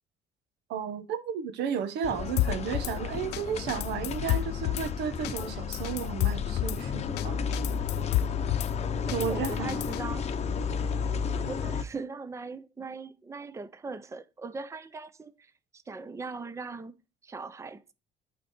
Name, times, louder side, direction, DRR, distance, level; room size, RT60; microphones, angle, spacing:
voice 1, 0.7-7.4 9.1-9.8, right 7 dB, 85° right, 1.1 m, -33 dB
sound 1, 2.0-11.8, left 6 dB, 40° left, 0.8 m, -32 dB
Drum kit / Snare drum, 2.4-2.9 3.3-3.4 3.7-4.9 5.2-5.5 5.7-6.8 7.2-7.3 7.5-8.7 9.1-10.0, left 15 dB, 75° left, 0.4 m, -30 dB
voice 2, 9.0-10.3 11.4-17.0 17.2-17.9, right 4 dB, 15° right, 0.6 m, -40 dB
8.3 x 4.5 x 4.4 m
cardioid pair, 110°, 17 cm